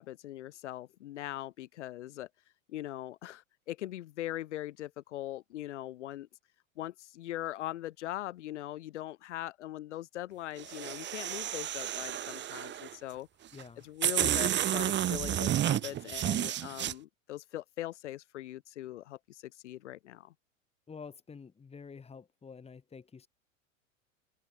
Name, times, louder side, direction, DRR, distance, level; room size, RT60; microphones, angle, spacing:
voice 1, 0.0-2.3 2.7-6.3 6.8-13.3 13.8-20.3, left 14 dB, 60° left, 4.0 m, -41 dB
sound 1, 10.6-12.9 13.6-13.7 14.0-16.9, right 11 dB, 25° right, 2.7 m, -31 dB
voice 2, 13.5-13.9 20.9-23.3, left 5 dB, 15° left, 4.0 m, -48 dB
figure-of-eight pair, 95°, 40 cm